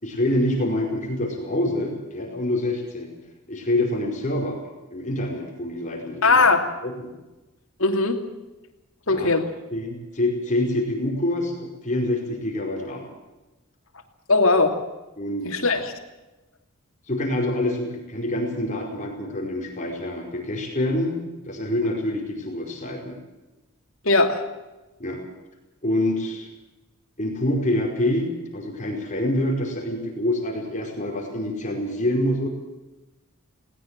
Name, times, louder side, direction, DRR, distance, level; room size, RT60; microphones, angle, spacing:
voice 1, 0.0-3.1 3.5-4.6 4.9-6.4 6.8-7.1 9.1-9.3 9.7-13.1 15.2-15.6 17.1-21.2 21.5-23.2 25.0-25.2 25.8-26.5 27.2-32.5, left 1 dB, 35° left, 1 dB, 5.0 m, -26 dB
voice 2, 6.2-6.6 7.8-8.2 9.1-9.5 14.3-14.8 15.4-15.9 24.0-24.4, left 3 dB, 65° left, 5 dB, 2.9 m, -19 dB
20.5 x 18.5 x 7.6 m, 1.1 s
head